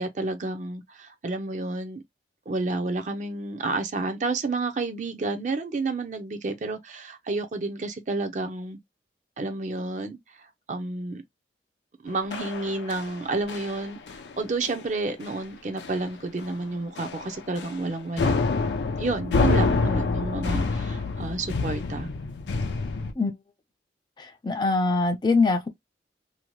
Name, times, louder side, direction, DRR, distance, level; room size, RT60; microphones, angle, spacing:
voice 1, 0.0-2.0 2.5-8.8 9.4-11.2 12.0-18.3 19.0-22.1, right 3 dB, 45° right, 0.5 m, -30 dB
sound 1, 12.3-13.2 13.5-13.8 14.1-14.3 14.6-14.8 15.2-15.3 15.8-16.1 16.4-16.6 17.0-17.9 18.2-23.1, left 3 dB, 85° left, 0.5 m, -27 dB
voice 2, 24.2-25.7, left 3 dB, 25° left, 0.4 m, -23 dB
2.7 x 2.1 x 3.0 m
head